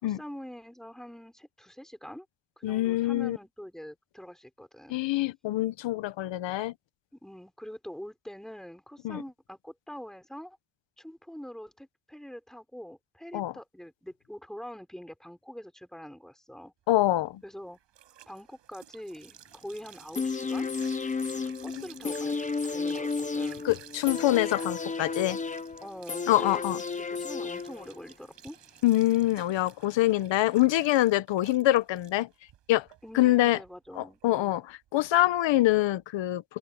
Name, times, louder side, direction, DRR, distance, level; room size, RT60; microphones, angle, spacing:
voice 1, 0.0-2.3 2.6-5.0 7.2-10.6 11.0-16.7 17.4-17.8 18.3-20.7 21.4-22.4 22.7-23.7 25.8-28.6 33.0-34.6, equal, ahead, 4.3 m, -44 dB
voice 2, 2.6-3.4 4.9-6.7 9.0-9.2 13.3-13.5 16.9-17.4 23.6-25.4 26.3-26.8 28.8-32.3 32.7-32.9 33.1-33.6 34.0-34.6 34.9-36.4, left 15 dB, 85° left, 1.0 m, -25 dB
sound 1, 16.9-36.0, right 11 dB, 75° right, 6.5 m, -53 dB
sound 2, 20.1-28.1 28.5-28.6, left 4 dB, 20° left, 0.8 m, -33 dB
open air
cardioid pair, 160°, 43 cm